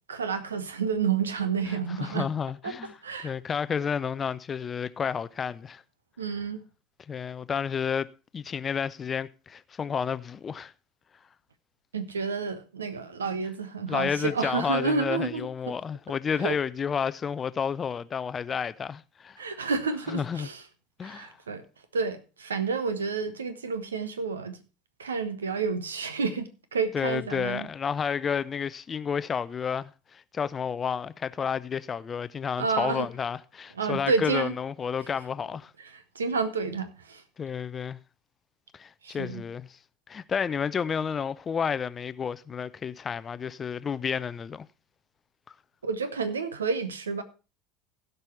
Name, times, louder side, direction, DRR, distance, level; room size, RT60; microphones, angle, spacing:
voice 1, 0.1-2.3 2.6-2.8 3.0-3.3 6.2-6.6 11.9-15.8 16.4-16.6 19.4-20.6 21.0-21.6 21.9-24.6 25.0-27.7 32.6-33.1 33.8-34.5 35.8-37.2 39.0-39.4 45.8-47.2, right 5 dB, 75° right, 1.0 m, -30 dB
voice 2, 1.7-2.9 3.2-5.8 7.1-8.1 8.3-10.7 13.9-19.4 20.1-20.5 21.0-21.4 26.9-35.7 37.4-38.0 38.7-39.7 40.1-44.7, left 7 dB, 25° left, 0.5 m, -31 dB
16.0 x 5.5 x 4.4 m
figure-of-eight pair, 70°, 0 cm